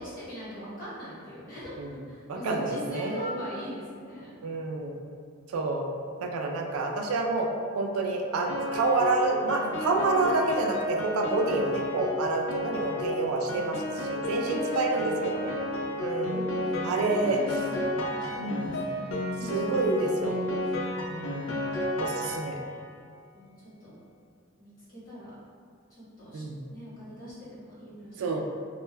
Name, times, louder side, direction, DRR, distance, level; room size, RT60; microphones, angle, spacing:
voice 1, 0.0-4.3 14.2-15.9 16.3-16.7 17.0-20.4 23.3-24.0 24.6-25.3 25.9-26.4 26.7-28.4, equal, 40° left, -11 dB, 1.1 m, -42 dB
voice 2, 2.3-3.5 4.4-5.0 5.5-5.9 6.2-7.5 7.8-13.8 14.1-15.5 16.0-16.4 16.8-17.4 18.4-18.8 19.5-20.4 21.1-21.5 22.0-22.6 26.3-26.6 28.2-28.4, right 3 dB, 85° right, 2 dB, 0.3 m, -28 dB
Piano, 8.5-22.9, left 1 dB, 75° left, 0.4 m, -32 dB
2.2 x 2.1 x 3.2 m, 2.2 s
head